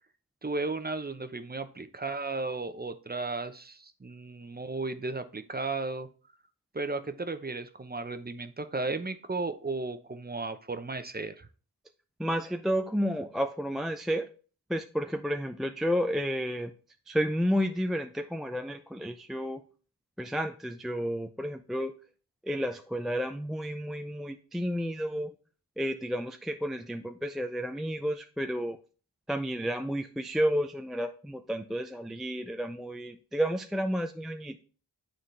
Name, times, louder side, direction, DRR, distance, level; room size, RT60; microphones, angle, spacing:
voice 1, 0.4-6.1 6.7-11.5, right 3 dB, 25° right, 10 dB, 0.8 m, -34 dB
voice 2, 12.2-14.3 14.7-16.7 17.1-19.6 20.2-21.9 22.4-25.3 25.8-28.8 29.3-34.6, equal, ahead, 7 dB, 0.4 m, -31 dB
9.1 x 3.9 x 3.3 m, 0.39 s
cardioid pair, 50°, 40 cm